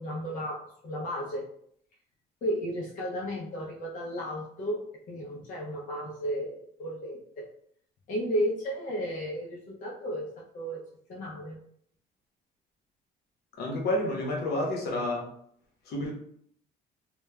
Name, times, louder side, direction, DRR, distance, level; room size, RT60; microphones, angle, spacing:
voice 1, 0.0-1.5 2.4-7.5 8.1-10.8 11.1-11.6, equal, 50° left, -3 dB, 0.5 m, -34 dB
voice 2, 13.6-15.2 15.9-16.1, left 1 dB, 70° left, -1 dB, 0.9 m, -29 dB
3.0 x 2.2 x 2.2 m, 0.66 s
cardioid pair, 110°, 17 cm